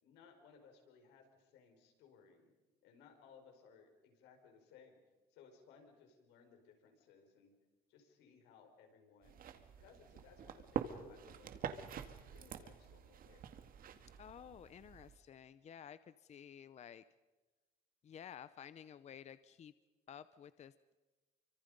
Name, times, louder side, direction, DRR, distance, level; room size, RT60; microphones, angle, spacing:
voice 1, 0.0-2.5 2.8-5.0 5.3-7.5 7.9-9.4 9.8-13.5, left 6 dB, 90° left, 4 dB, 5.6 m, -63 dB
sound 1, 9.2-15.2, right 8 dB, 60° right, 2.0 m, -46 dB
voice 2, 14.2-17.0 18.0-19.7 20.1-20.9, left 9 dB, 40° left, 15 dB, 0.7 m, -53 dB
30.0 x 25.0 x 5.4 m, 1.2 s
cardioid pair, 110°, 17 cm